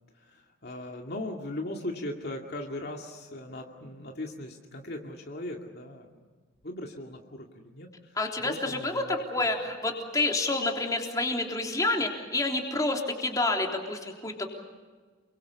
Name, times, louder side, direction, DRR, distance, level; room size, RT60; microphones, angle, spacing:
voice 1, 0.2-6.2 6.6-9.2, left 1 dB, 50° left, 1 dB, 2.3 m, -39 dB
voice 2, 8.2-14.5, left 2 dB, 15° left, 1 dB, 3.4 m, -28 dB
28.5 x 23.5 x 7.1 m, 1.4 s
head